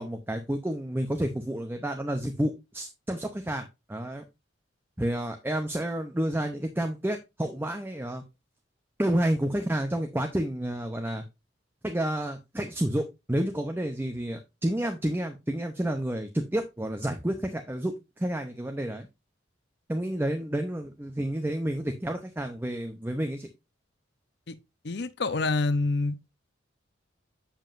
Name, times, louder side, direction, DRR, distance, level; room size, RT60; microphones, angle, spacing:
voice 1, 0.0-4.2 5.0-8.2 9.0-11.2 11.8-19.1 19.9-23.5, right 1 dB, 10° right, 0.6 m, -30 dB
voice 2, 24.8-26.2, left 3 dB, 55° left, 0.7 m, -27 dB
7.6 x 7.1 x 2.5 m
head